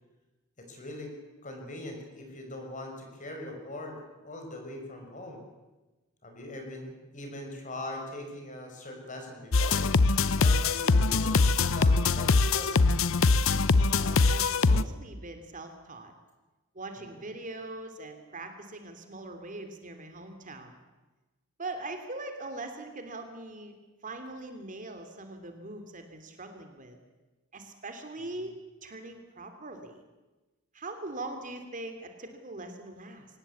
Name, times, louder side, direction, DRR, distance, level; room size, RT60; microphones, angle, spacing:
voice 1, 0.6-1.1 1.4-5.4 6.2-9.8 10.4-12.9 17.0-17.2, left 1 dB, 40° left, 3 dB, 6.0 m, -41 dB
sound 1, 9.5-14.8, left 4 dB, 80° left, 0.8 m, -23 dB
voice 2, 13.9-16.1 16.7-20.7 21.6-23.7 24.0-27.0 27.5-28.5 28.8-30.0 30.7-33.3, right 2 dB, 40° right, 6 dB, 2.7 m, -41 dB
24.0 x 18.5 x 8.4 m, 1.1 s
head